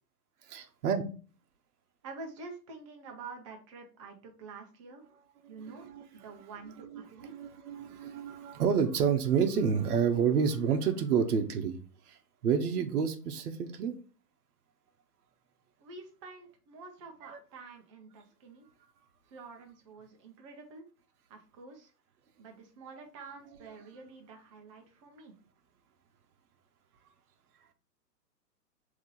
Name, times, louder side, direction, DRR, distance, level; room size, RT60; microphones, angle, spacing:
voice 1, 0.4-1.0 5.4-6.3 6.8-11.8 12.1-13.9, right 7 dB, 65° right, 6 dB, 0.8 m, -29 dB
voice 2, 2.0-5.0 5.5-7.3 15.8-18.7 19.3-20.8 21.3-21.9 22.4-25.3, right 4 dB, 20° right, 2 dB, 0.5 m, -48 dB
3.6 x 2.8 x 4.0 m, 0.38 s
hypercardioid pair, 125°, 49 cm